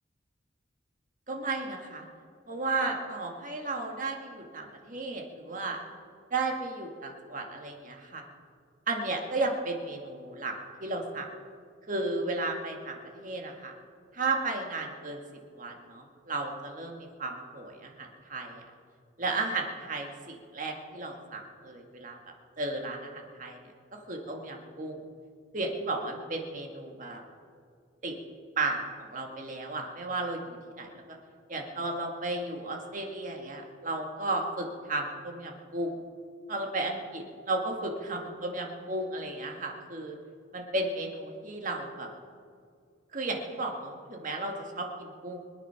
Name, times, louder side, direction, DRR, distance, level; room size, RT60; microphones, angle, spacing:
voice 1, 1.3-2.1 2.5-5.8 6.3-8.2 8.9-10.5 10.8-11.3 11.9-13.7 14.1-15.2 15.6-18.6 19.2-22.2 22.6-23.6 23.9-25.0 25.5-27.2 28.0-28.2 28.6-28.8 29.1-31.2 31.5-36.0 36.5-40.2 40.5-42.1 43.1-45.4, right 2 dB, 45° right, 2 dB, 1.9 m, -34 dB
24.5 x 9.0 x 5.8 m, 2.2 s
head